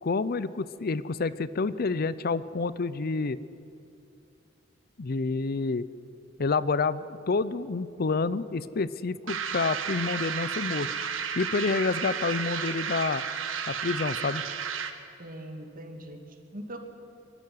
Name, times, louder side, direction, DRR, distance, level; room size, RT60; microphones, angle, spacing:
voice 1, 0.0-3.4 5.0-5.9 6.4-10.9 11.4-13.2 13.7-14.4, left 4 dB, 50° left, 17 dB, 0.6 m, -28 dB
sound 1, 9.3-15.1, right 7 dB, 90° right, 1.6 m, -32 dB
voice 2, 15.2-16.8, right 1 dB, 45° right, 4 dB, 2.5 m, -41 dB
23.5 x 12.5 x 9.7 m, 2.7 s
head